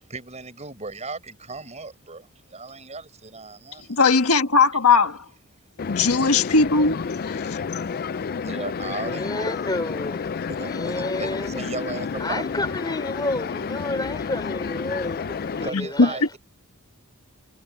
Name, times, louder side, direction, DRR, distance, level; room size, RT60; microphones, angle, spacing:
voice 1, 0.0-4.0 8.4-9.3 10.5-12.6 15.6-16.4, right 3 dB, 30° right, 6.6 m, -36 dB
voice 2, 3.9-5.2 5.9-7.6 15.7-16.1, left 4 dB, 80° left, 1.4 m, -19 dB
sound 1, 5.8-15.7, left 5 dB, 45° left, 0.4 m, -30 dB
voice 3, 9.1-11.5 12.2-16.4, left 2 dB, 20° left, 5.6 m, -30 dB
head